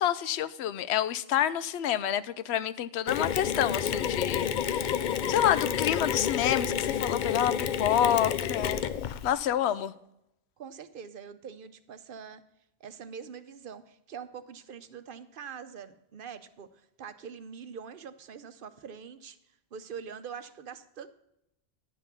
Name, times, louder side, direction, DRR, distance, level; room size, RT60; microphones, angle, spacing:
voice 1, 0.0-4.9 5.3-8.8 9.2-9.9, left 10 dB, 85° left, 15 dB, 0.8 m, -28 dB
Mechanisms, 3.1-9.3, left 8 dB, 55° left, 0.6 m, -30 dB
voice 2, 6.9-7.6 10.6-12.4 12.8-19.4 19.7-21.1, right 7 dB, 60° right, 12 dB, 0.8 m, -44 dB
10.5 x 5.9 x 6.8 m, 0.84 s
omnidirectional pair, 1.1 m